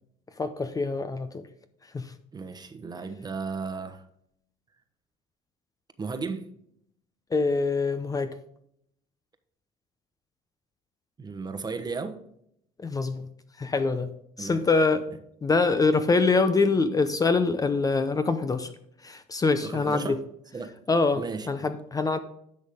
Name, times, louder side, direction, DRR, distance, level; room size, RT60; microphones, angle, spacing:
voice 1, 0.4-1.5 1.9-2.1 7.3-8.4 12.8-13.3 13.6-14.1 14.4-15.0 15.4-18.7 19.0-20.2 20.9-22.2, left 3 dB, 25° left, 0.7 m, -24 dB
voice 2, 2.3-4.1 6.0-6.5 11.2-12.2 14.4-14.6 19.6-20.2 20.5-20.7 21.1-21.7, right 4 dB, 25° right, 1.1 m, -35 dB
10.5 x 6.2 x 3.6 m
supercardioid pair, 95°, 16 cm